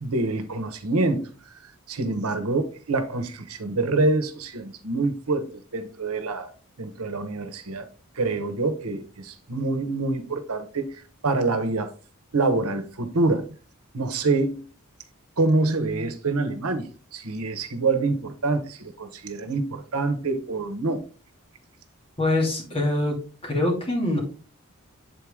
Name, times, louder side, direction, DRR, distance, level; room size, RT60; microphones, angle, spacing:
voice 1, 0.0-1.3 1.9-6.5 6.8-7.8 8.1-10.9 11.2-11.9 12.3-13.4 13.9-14.6 15.4-21.0, right 3 dB, 80° right, 1.0 m, -26 dB
voice 2, 22.2-23.2 23.4-24.2, left 1 dB, 25° left, 2.5 m, -24 dB
7.7 x 4.7 x 3.6 m
head